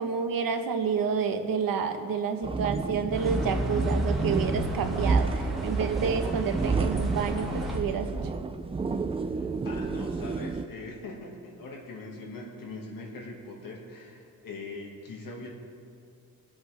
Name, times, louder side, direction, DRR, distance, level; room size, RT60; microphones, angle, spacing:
voice 1, 0.0-8.2, right 6 dB, 80° right, 5 dB, 1.1 m, -29 dB
sound 1, 2.4-10.7, right 4 dB, 15° right, 0.3 m, -30 dB
sound 2, 3.1-7.8, right 1 dB, ahead, 1.7 m, -33 dB
voice 2, 9.3-15.5, left 2 dB, 75° left, 0 dB, 1.8 m, -41 dB
23.0 x 7.9 x 3.3 m, 2.3 s
wide cardioid pair, 155°, 34 cm